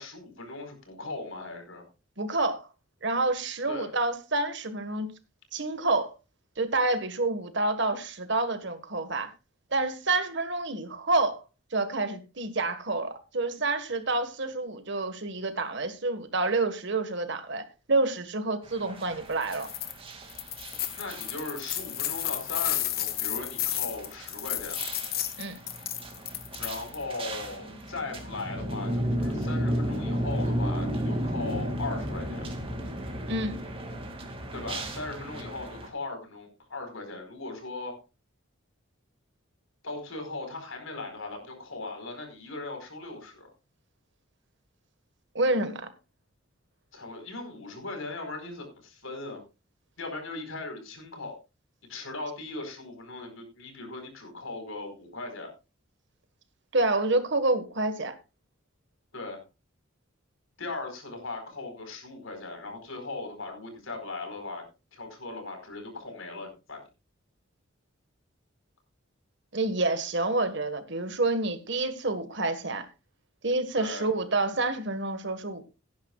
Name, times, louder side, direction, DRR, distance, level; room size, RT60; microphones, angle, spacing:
voice 1, 0.0-1.8 3.7-3.9 21.0-24.8 26.6-32.4 34.5-38.0 39.8-43.5 46.9-49.4 50.0-51.3 51.9-55.5 59.1-59.4 60.6-64.6 64.9-66.8 73.8-74.1, left 3 dB, 75° left, 4.6 m, -38 dB
voice 2, 2.2-2.6 3.0-5.1 5.5-6.1 6.6-9.3 9.7-11.4 11.7-19.7 25.4-25.6 33.3-33.6 45.3-45.9 56.7-58.1 69.5-72.8 73.4-75.6, right 2 dB, 60° right, 1.6 m, -28 dB
sound 1, 18.6-35.9, equal, 25° right, 2.4 m, -34 dB
sound 2, 19.4-19.9 20.3-27.0, left 12 dB, 45° left, 1.3 m, -32 dB
17.5 x 10.5 x 2.4 m
head